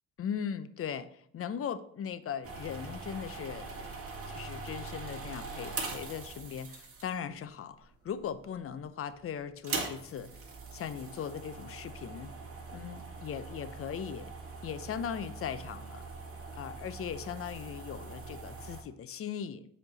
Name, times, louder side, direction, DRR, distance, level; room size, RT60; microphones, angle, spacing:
voice 1, 0.2-3.9 4.3-10.3 10.7-12.3 12.7-14.3 14.6-16.0 16.5-19.7, left 8 dB, 50° left, 13 dB, 0.6 m, -39 dB
sound 1, 2.4-7.3 8.1-8.6 8.8-8.9 9.5-18.8, right 3 dB, 50° right, 2.1 m, -42 dB
8.0 x 4.4 x 4.1 m, 0.67 s
cardioid pair, 90°, 30 cm